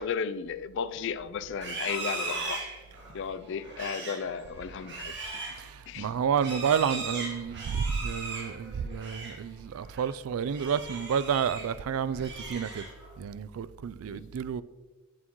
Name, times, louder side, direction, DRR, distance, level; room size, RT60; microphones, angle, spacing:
voice 1, 0.0-2.6 3.1-5.4 5.9-6.1 14.0-14.2, left 6 dB, 55° left, 0.4 m, -34 dB
Livestock farm animals working animals, 1.5-9.4 9.8-10.1 10.5-11.7 12.1-13.1, right 3 dB, 55° right, 1.9 m, -39 dB
voice 2, 5.6-12.8 13.2-14.6, right 7 dB, 70° right, 0.3 m, -30 dB
8.5 x 7.3 x 3.0 m
head